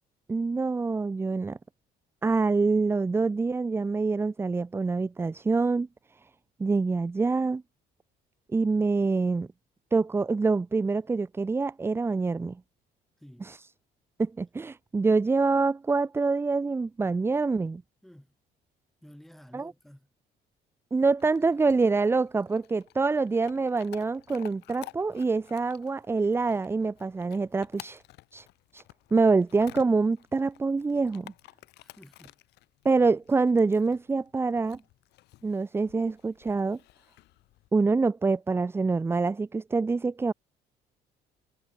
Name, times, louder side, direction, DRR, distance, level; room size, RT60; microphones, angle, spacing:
voice 1, 0.3-1.6 2.2-5.9 6.6-7.6 8.5-9.5 9.9-12.6 13.4-13.6 14.2-17.8 19.5-19.7 20.9-28.0 28.3-28.5 28.7-28.8 29.1-31.3 32.8-34.8 35.4-36.8 37.7-40.3, right 4 dB, 15° right, 0.4 m, -26 dB
voice 2, 13.2-13.5 18.0-18.4 19.0-20.1 31.8-32.4, equal, ahead, 2.3 m, -52 dB
Chewing mastication / Dog, 21.2-37.7, left 18 dB, 85° left, 6.0 m, -53 dB
cardioid pair, 110°, 17 cm